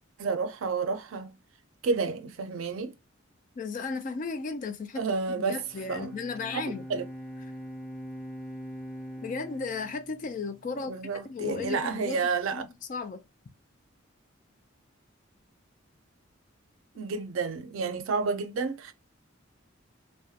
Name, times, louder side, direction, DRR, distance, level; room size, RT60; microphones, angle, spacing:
voice 1, 0.2-1.4 1.8-2.9 5.0-5.6 5.9-6.1 6.9-7.0 10.9-12.7 17.0-18.9, right 4 dB, 75° right, 0.4 m, -30 dB
voice 2, 3.6-6.8 9.2-11.0 11.2-12.2 12.5-13.2, left 4 dB, 40° left, 0.3 m, -35 dB
Bowed string instrument, 5.5-10.9, equal, 5° left, 0.9 m, -43 dB
2.3 x 2.1 x 2.6 m
head